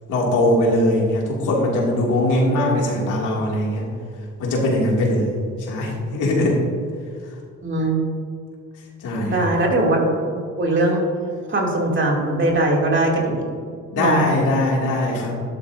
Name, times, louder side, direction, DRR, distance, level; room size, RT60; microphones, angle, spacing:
voice 1, 0.1-3.9 4.4-6.6 9.0-9.5 13.9-15.4, left 1 dB, 85° left, -2 dB, 2.7 m, -21 dB
voice 2, 7.6-8.0 9.3-10.2 10.6-11.1 11.5-13.4 14.0-14.2, right 2 dB, 40° right, -2 dB, 3.0 m, -20 dB
13.0 x 11.5 x 2.8 m, 2.3 s
cardioid pair, 90°, 30 cm